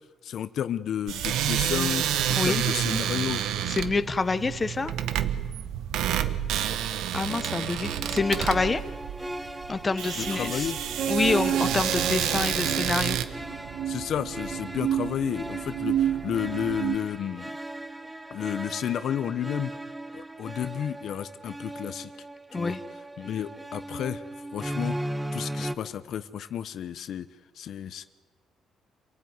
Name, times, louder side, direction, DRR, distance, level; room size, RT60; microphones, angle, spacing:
voice 1, 0.2-3.4 10.1-10.8 13.9-17.6 18.3-19.8 20.1-22.1 22.5-22.8 23.2-24.2 24.5-25.0 25.3-27.3 27.5-28.1, left 9 dB, 60° left, 13 dB, 0.9 m, -32 dB
sound 1, 1.1-13.2, right 10 dB, 85° right, 1.3 m, -29 dB
voice 2, 3.7-4.9 7.1-8.8 9.7-10.7 11.1-13.2 22.5-22.8, left 3 dB, 20° left, 11 dB, 1.0 m, -27 dB
sound 2, 7.3-25.8, right 1 dB, 5° right, 0.9 m, -38 dB
sound 3, 11.0-17.0, right 10 dB, 60° right, 1.2 m, -30 dB
27.5 x 18.0 x 9.6 m, 1.4 s
cardioid pair, 150°, 0 cm